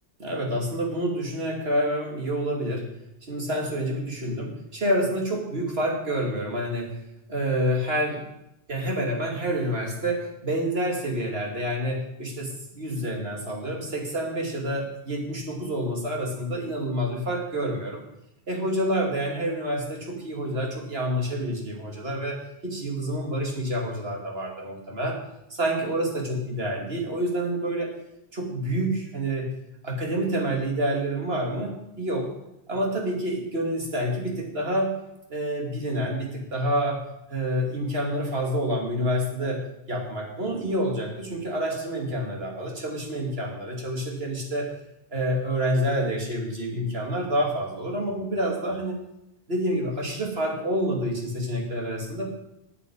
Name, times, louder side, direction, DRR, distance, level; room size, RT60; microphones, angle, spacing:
voice 1, 0.2-2.9 3.3-6.9 7.3-8.3 8.7-18.0 18.5-25.2 25.5-27.9 28.3-29.5 29.8-32.3 32.7-35.0 35.3-44.7 45.1-48.9 49.5-52.3, equal, 70° right, 1 dB, 2.8 m, -28 dB
9.4 x 8.6 x 8.7 m, 0.85 s
omnidirectional pair, 1.1 m